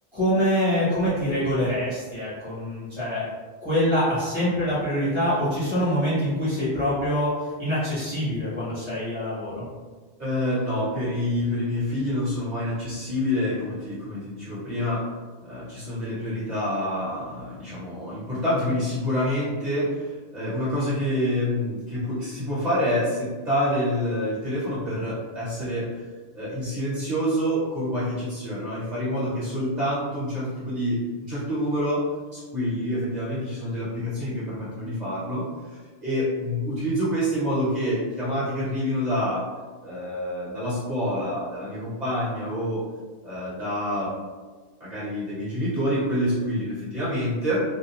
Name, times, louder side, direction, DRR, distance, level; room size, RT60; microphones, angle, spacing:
voice 1, 0.1-3.2 3.6-7.3 7.6-9.6, equal, 30° left, -12 dB, 0.9 m, -25 dB
voice 2, 10.2-15.0 15.4-26.0 26.3-32.0 32.3-39.5 39.8-42.8 43.2-44.2 44.8-47.6, equal, 40° right, -9 dB, 1.2 m, -27 dB
2.4 x 2.2 x 2.9 m, 1.4 s
omnidirectional pair, 1.1 m